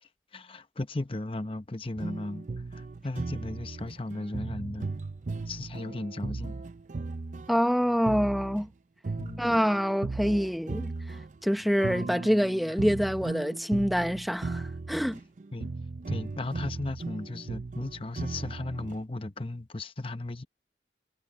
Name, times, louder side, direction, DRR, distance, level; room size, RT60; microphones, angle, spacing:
voice 1, 0.0-4.9 5.5-6.6 9.2-9.4 15.5-15.7 16.1-20.4, left 2 dB, 30° left, 0.8 m, -36 dB
sound 1, 2.0-8.7 9.0-19.0, right 3 dB, 45° right, 0.5 m, -37 dB
voice 2, 7.5-8.7 9.4-11.2 11.4-15.2, equal, ahead, 0.7 m, -26 dB
head